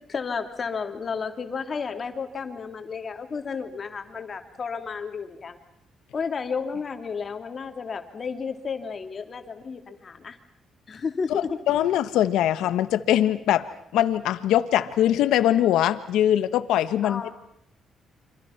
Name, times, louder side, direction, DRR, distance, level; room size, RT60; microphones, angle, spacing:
voice 1, 0.1-5.6 6.1-10.4 10.9-11.6 17.0-17.3, left 5 dB, 40° left, 6 dB, 3.1 m, -32 dB
voice 2, 11.7-13.7 13.9-17.3, left 12 dB, 90° left, 12 dB, 1.3 m, -22 dB
29.0 x 26.0 x 6.0 m, 0.71 s
cardioid pair, 90°, 0 cm